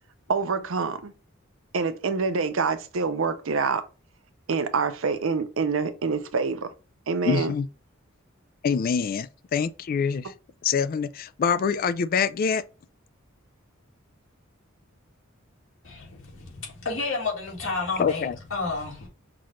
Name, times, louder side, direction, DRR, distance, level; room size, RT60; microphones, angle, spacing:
voice 1, 0.3-1.1 1.7-3.8 4.5-6.7 7.1-7.5, right 4 dB, 70° right, 0.6 m, -26 dB
voice 2, 7.3-7.7 8.6-10.3 10.6-12.6 18.0-18.4, left 6 dB, 45° left, 0.3 m, -25 dB
voice 3, 15.8-19.1, left 3 dB, 70° left, 2.2 m, -31 dB
5.9 x 2.4 x 3.1 m
head